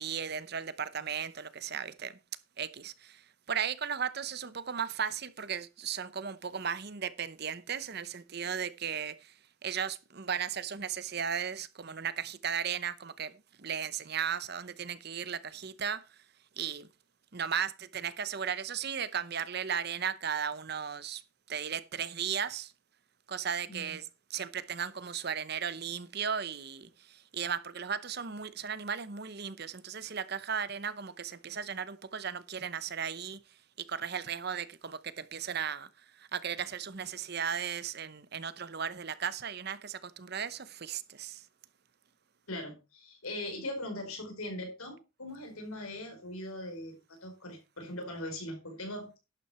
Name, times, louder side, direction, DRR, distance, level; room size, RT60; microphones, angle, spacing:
voice 1, 0.0-2.1 2.6-3.2 3.5-9.3 9.6-13.3 13.6-16.0 16.6-16.9 17.3-21.2 21.5-22.7 23.3-33.4 33.8-35.9 36.2-41.4, right 7 dB, 50° right, 0.8 m, -36 dB
voice 2, 23.7-24.0 42.5-49.1, left 1 dB, 85° left, 4.5 m, -40 dB
11.5 x 8.6 x 4.3 m
head